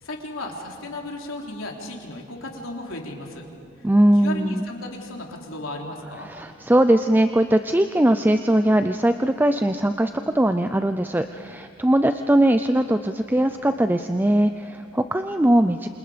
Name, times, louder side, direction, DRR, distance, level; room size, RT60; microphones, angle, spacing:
voice 1, 0.0-3.5 3.8-3.9 4.2-6.3, left 2 dB, 85° left, 0 dB, 3.5 m, -35 dB
voice 2, 3.8-4.7 6.2-15.9, right 1 dB, 10° right, 8 dB, 0.5 m, -20 dB
28.0 x 27.0 x 5.1 m, 2.7 s
head